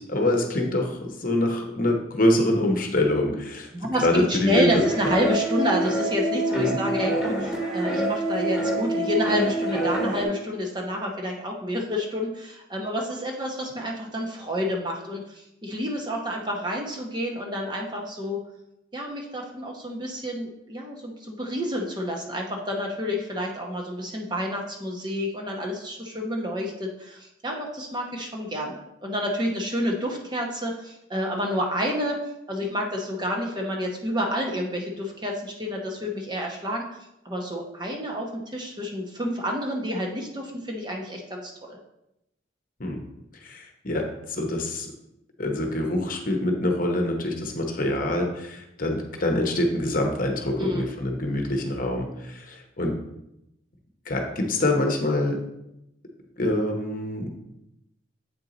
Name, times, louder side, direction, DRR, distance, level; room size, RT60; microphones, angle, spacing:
voice 1, 0.1-3.7 4.0-5.1 6.5-6.8 42.8-43.0 43.4-44.9 45.4-52.9 54.1-55.4 56.4-57.3, left 1 dB, 45° left, 2 dB, 0.9 m, -25 dB
voice 2, 3.7-18.4 18.9-32.2 32.5-37.0 37.2-41.8 50.6-50.8, equal, 20° right, 0 dB, 0.8 m, -29 dB
sound 1, 4.8-10.2, right 2 dB, 5° right, 1.4 m, -26 dB
7.8 x 4.5 x 3.9 m, 0.86 s
head